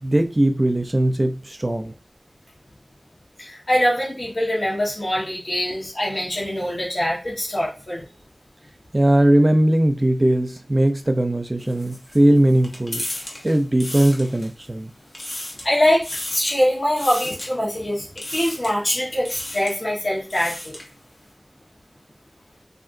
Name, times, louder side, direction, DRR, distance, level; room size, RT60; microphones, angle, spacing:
voice 1, 0.0-1.9 8.9-13.0 13.4-14.9, right 1 dB, 40° right, 0.5 m, -19 dB
voice 2, 3.4-8.0 15.6-16.0 16.3-18.0 18.3-20.8, equal, 75° left, 1.1 m, -23 dB
sound 1, 11.6-14.7 15.0-15.7 16.0-16.6 17.0-17.5 18.2-18.8 19.2-19.8 20.1-20.9, left 1 dB, 90° left, 0.8 m, -34 dB
3.6 x 2.6 x 2.5 m
wide cardioid pair, 45°, 0 cm